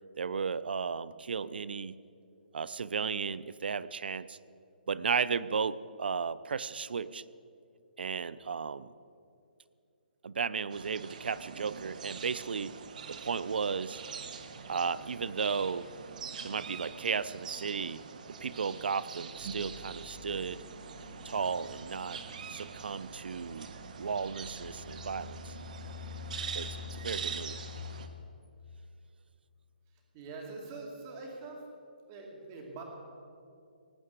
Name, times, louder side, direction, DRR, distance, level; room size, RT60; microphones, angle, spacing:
voice 1, 0.2-2.0 2.5-4.4 4.9-7.2 8.0-8.9 10.2-12.8 13.1-14.0 14.7-15.9 16.4-18.0 18.3-20.6 21.2-22.2 22.5-23.7 24.0-25.5 26.5-27.6, right 5 dB, 75° right, 17 dB, 0.5 m, -34 dB
sound 1, 10.7-28.1, right 6 dB, 50° right, 1.2 m, -44 dB
sound 2, 19.4-27.8, left 7 dB, 30° left, 1.9 m, -48 dB
voice 2, 30.1-31.6 32.1-32.8, right 3 dB, 25° right, 1 dB, 2.4 m, -44 dB
18.5 x 7.6 x 8.2 m, 2.5 s
hypercardioid pair, 165°, 5 cm